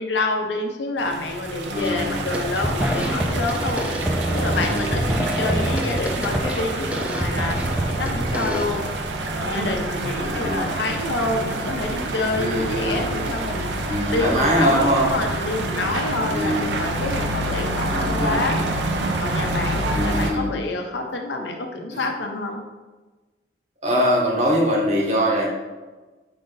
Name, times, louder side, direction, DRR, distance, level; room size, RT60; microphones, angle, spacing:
voice 1, 0.0-3.9 4.3-8.9 9.4-13.7 14.1-18.6 19.2-22.6, left 2 dB, 85° left, 3 dB, 0.6 m, -27 dB
sound 1, 1.0-20.3, right 2 dB, 75° right, 0.5 m, -27 dB
voice 2, 1.7-2.3 4.3-5.1 10.1-10.8 12.4-13.1 13.9-15.1 16.3-16.7 17.9-18.5 19.9-20.5 21.9-22.1 23.8-25.5, equal, 40° right, -2 dB, 1.0 m, -23 dB
sound 2, 1.8-2.0 2.3-8.6, equal, 5° right, 0.4 m, -26 dB
4.9 x 2.6 x 3.8 m, 1.2 s
head